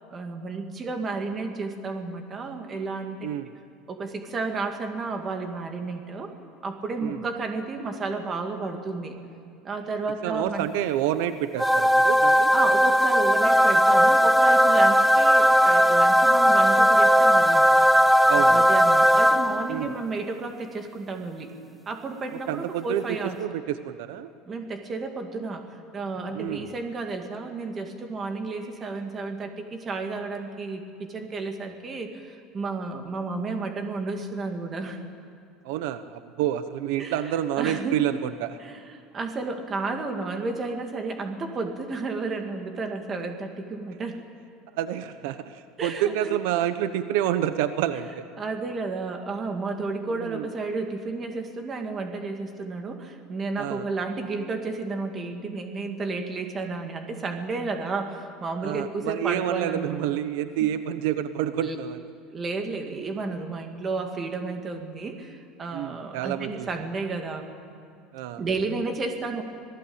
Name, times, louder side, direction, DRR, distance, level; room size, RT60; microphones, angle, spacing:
voice 1, 0.1-3.5 3.9-6.3 6.6-9.2 9.6-10.7 12.5-17.7 18.5-21.5 21.9-23.4 24.4-35.0 37.0-37.2 37.6-38.0 38.6-44.2 45.8-46.4 48.4-60.2 61.6-61.8 62.3-67.5 68.4-69.4, right 3 dB, 20° right, 5 dB, 2.2 m, -32 dB
voice 2, 10.2-12.5 18.3-18.7 19.7-19.9 22.5-23.0 23.4-24.3 26.3-26.6 35.6-38.6 44.8-48.3 50.2-50.5 53.6-53.8 58.6-62.0 65.7-66.7 68.1-68.4, right 11 dB, 75° right, 11 dB, 1.0 m, -28 dB
sound 1, 11.6-19.8, equal, 5° right, 0.5 m, -18 dB
26.5 x 18.5 x 8.8 m, 2.5 s
cardioid pair, 170°, 0 cm